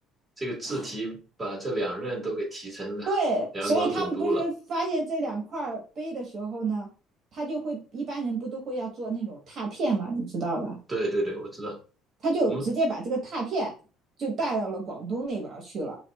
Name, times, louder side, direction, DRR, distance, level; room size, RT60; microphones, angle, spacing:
voice 1, 0.4-3.1 3.5-4.5 10.9-11.8 12.5-12.7, right 1 dB, 15° right, -1 dB, 1.7 m, -31 dB
voice 2, 3.1-6.9 7.3-10.8 12.2-13.7 14.2-16.0, right 2 dB, 45° right, 0 dB, 1.2 m, -29 dB
5.6 x 2.5 x 2.3 m, 0.35 s
cardioid pair, 120°, 0 cm